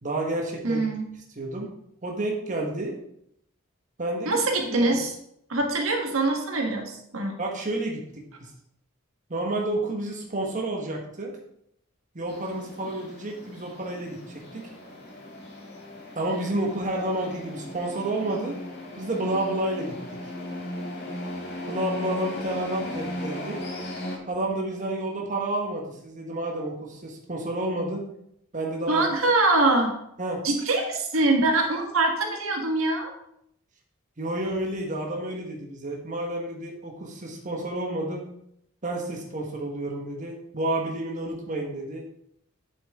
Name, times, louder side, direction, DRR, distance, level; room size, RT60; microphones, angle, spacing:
voice 1, 0.0-0.8 1.3-1.7 2.0-2.9 4.0-4.4 4.7-5.0 7.4-8.0 8.4-8.5 9.3-11.3 12.1-14.7 16.1-18.6 19.0-20.0 21.7-23.6 24.3-28.1 28.5-29.1 30.2-30.4 34.2-38.2 38.8-42.0, right 1 dB, 40° right, 0 dB, 1.3 m, -30 dB
voice 2, 0.6-1.1 4.2-5.1 5.5-7.4 28.9-29.9 30.4-33.1, right 2 dB, 75° right, 2 dB, 1.6 m, -23 dB
sound 1, 12.3-24.2, left 1 dB, 50° left, 1.7 m, -37 dB
8.4 x 7.4 x 3.6 m, 0.73 s
head